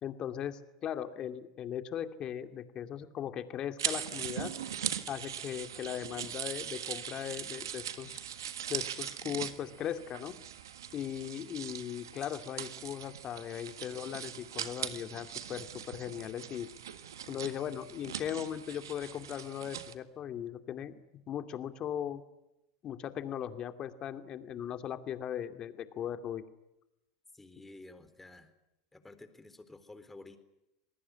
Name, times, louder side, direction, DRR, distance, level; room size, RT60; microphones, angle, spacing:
voice 1, 0.0-4.5 5.1-8.2 8.7-10.3 10.9-16.7 17.3-22.2 22.8-26.4, left 10 dB, 40° left, 9 dB, 2.5 m, -38 dB
sound 1, 3.8-19.9, right 9 dB, 90° right, 1.7 m, -40 dB
voice 2, 27.3-28.5 28.9-30.4, left 2 dB, 10° left, 10 dB, 3.9 m, -52 dB
27.0 x 19.5 x 9.8 m, 0.91 s
hypercardioid pair, 100°, 2 cm